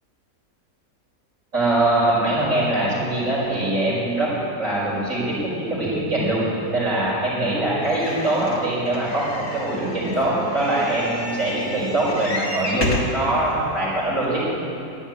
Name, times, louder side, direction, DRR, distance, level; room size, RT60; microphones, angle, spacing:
voice 1, 1.5-4.3 4.6-6.4 6.7-14.4, right 1 dB, 60° right, -7 dB, 5.6 m, -22 dB
sound 1, 7.8-13.2 13.9-14.0 14.2-14.3, left 2 dB, 85° left, 2.6 m, -31 dB
12.0 x 11.0 x 10.0 m, 2.7 s
omnidirectional pair, 1.5 m